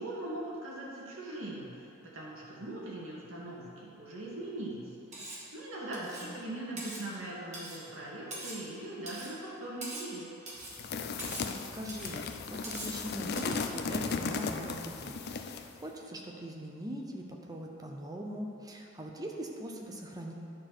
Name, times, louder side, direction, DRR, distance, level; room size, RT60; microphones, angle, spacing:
voice 1, 0.0-1.9 2.1-4.9 5.2-10.3, right 1 dB, 80° right, -5 dB, 2.2 m, -41 dB
Cutlery silverware, 5.1-5.5 5.9-6.3 6.8-7.1 7.5-7.8 8.3-8.7 9.1-9.3 9.8-10.2 10.5-10.8 11.2-11.5 11.9-12.2 12.6-13.0 13.4-13.7, right 2 dB, 35° right, 1.6 m, -43 dB
voice 2, 5.9-6.4 11.4-20.3, equal, 20° right, 0 dB, 0.7 m, -41 dB
sound 1, 10.7-15.7, left 5 dB, 50° left, 0.5 m, -36 dB
10.0 x 4.5 x 6.1 m, 2.8 s
head